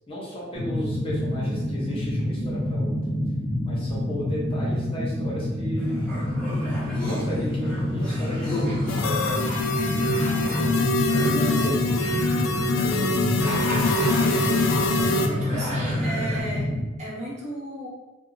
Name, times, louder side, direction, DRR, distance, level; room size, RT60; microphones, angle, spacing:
voice 1, 0.1-3.0 3.7-6.0 7.0-9.0 11.1-11.8 12.9-13.2 13.5-13.9, equal, 30° left, -5 dB, 0.7 m, -34 dB
sound 1, 0.5-16.8, left 1 dB, 55° right, 0.9 m, -27 dB
sound 2, 5.8-16.4, left 1 dB, 5° left, 0.9 m, -35 dB
sound 3, 8.9-15.3, left 2 dB, 85° left, 0.3 m, -24 dB
voice 2, 9.8-10.3 11.4-11.9 12.8-13.1 14.7-16.7 17.0-17.9, right 1 dB, 35° right, -5 dB, 0.7 m, -36 dB
2.3 x 2.1 x 3.1 m, 1.2 s
head